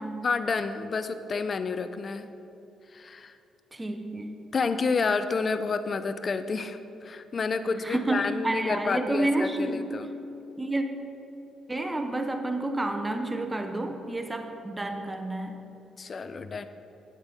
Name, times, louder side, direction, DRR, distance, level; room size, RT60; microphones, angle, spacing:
voice 1, 0.2-2.3 2.9-3.3 4.5-10.1 16.0-16.7, left 4 dB, 40° left, 11 dB, 0.5 m, -29 dB
voice 2, 3.7-4.4 7.7-9.9 10.6-10.8 11.7-15.6, right 2 dB, 15° right, 6 dB, 0.7 m, -30 dB
9.0 x 8.0 x 5.2 m, 2.9 s
cardioid pair, 90°, 0 cm